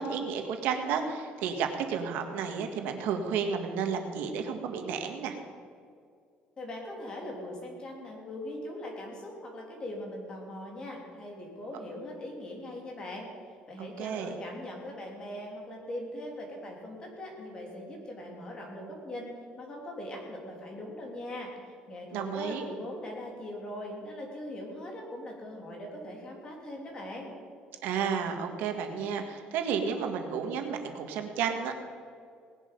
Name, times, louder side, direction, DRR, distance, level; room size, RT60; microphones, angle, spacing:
voice 1, 0.0-5.3 13.8-14.4 22.1-22.6 27.8-31.8, right 6 dB, 75° right, 5 dB, 1.7 m, -32 dB
voice 2, 6.6-13.3 13.7-27.3, left 1 dB, 25° left, 0 dB, 3.2 m, -41 dB
19.0 x 11.0 x 5.4 m, 2.3 s
cardioid pair, 160°, 3 cm